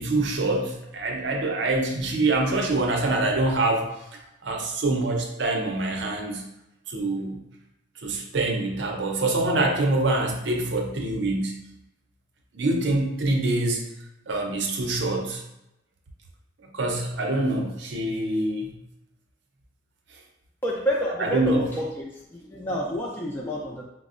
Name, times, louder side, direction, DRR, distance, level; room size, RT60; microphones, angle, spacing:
voice 1, 0.0-3.9 4.4-6.4 6.9-7.4 8.0-11.5 12.5-13.8 14.3-15.4 16.7-18.7 21.2-21.7, right 2 dB, 70° right, 2 dB, 0.6 m, -25 dB
voice 2, 20.6-22.0 22.4-23.8, equal, 10° left, -4 dB, 0.3 m, -28 dB
5.1 x 2.0 x 2.4 m, 0.86 s
head